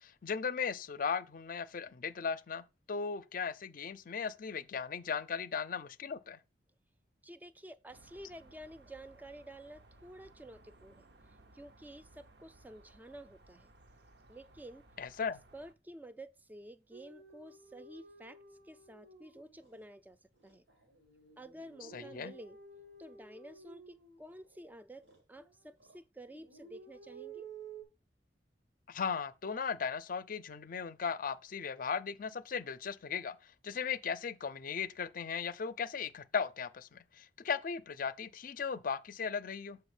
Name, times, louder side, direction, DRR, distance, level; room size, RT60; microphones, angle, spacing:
voice 1, 0.0-6.4 15.0-15.4 21.9-22.3 28.9-39.8, left 6 dB, 50° left, 0.5 m, -37 dB
voice 2, 7.2-11.1 11.5-13.7 14.3-14.8 15.5-20.2 20.4-20.6 21.4-22.6 23.0-27.5, right 1 dB, 10° right, 0.4 m, -51 dB
sound 1, 7.9-15.7, right 2 dB, 65° right, 0.8 m, -61 dB
sound 2, 16.9-19.8 20.4-24.6 25.0-26.0 26.3-27.8, right 5 dB, 90° right, 2.1 m, -53 dB
7.1 x 4.8 x 4.9 m
head